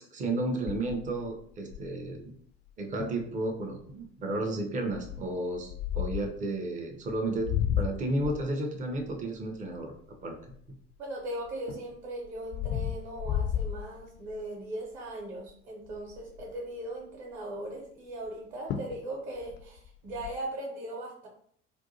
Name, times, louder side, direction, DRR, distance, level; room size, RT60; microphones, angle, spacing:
voice 1, 0.0-2.2 2.8-9.9 10.2-10.3, right 2 dB, 20° right, 3 dB, 0.6 m, -32 dB
sound 1, 0.7-2.1 2.7-2.8 3.0-3.3 3.8-4.1 4.9-6.4 7.1-11.0 11.4-14.5 14.9-15.2 15.5-15.6 15.9-16.6 18.3-18.4 18.7-19.0 19.3-20.3, left 9 dB, 30° left, 0.4 m, -34 dB
voice 2, 11.0-21.3, right 1 dB, 45° right, -2 dB, 1.1 m, -39 dB
2.6 x 2.2 x 2.7 m, 0.62 s
figure-of-eight pair, 70°, 36 cm